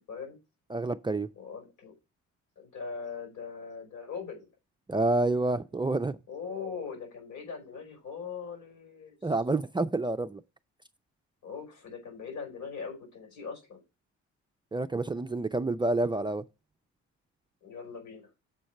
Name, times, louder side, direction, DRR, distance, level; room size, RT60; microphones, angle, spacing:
voice 1, 0.1-0.4 1.4-1.9 2.6-4.5 6.3-9.2 11.4-13.8 17.6-18.3, left 5 dB, 80° left, 4.8 m, -41 dB
voice 2, 0.7-1.3 4.9-6.2 9.2-10.4 14.7-16.4, right 2 dB, 15° right, 0.4 m, -28 dB
7.3 x 4.4 x 6.4 m
cardioid pair, 90°, 30 cm